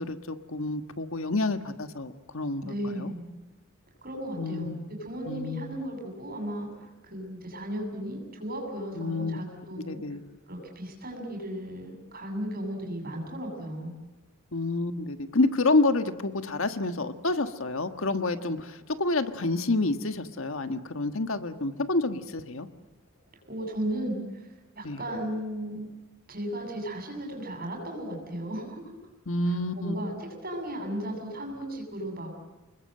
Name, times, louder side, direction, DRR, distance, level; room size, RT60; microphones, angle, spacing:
voice 1, 0.0-3.1 4.4-4.9 5.3-5.8 8.9-9.4 9.9-10.2 14.5-22.7 24.8-25.0 29.3-29.9, left 2 dB, 70° left, 9 dB, 1.5 m, -28 dB
voice 2, 2.6-3.3 4.0-10.0 10.5-13.9 23.5-24.4 24.8-25.9 26.3-29.0 29.4-30.1 30.4-32.3, right 1 dB, 45° right, 2 dB, 7.6 m, -35 dB
30.0 x 21.0 x 7.8 m, 1.2 s
head